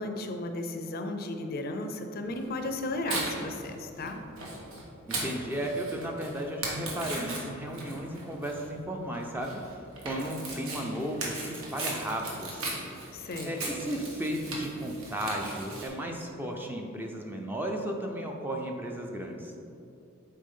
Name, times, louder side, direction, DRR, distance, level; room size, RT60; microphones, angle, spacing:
voice 1, 0.0-4.2 13.1-13.9, left 2 dB, 45° left, 5 dB, 0.5 m, -35 dB
Tearing, 2.3-15.9, right 2 dB, 75° right, 1.4 m, -38 dB
voice 2, 5.1-9.6 10.0-12.8 13.4-19.5, right 1 dB, 10° right, 1 dB, 0.5 m, -34 dB
8.4 x 4.5 x 3.7 m, 2.7 s
head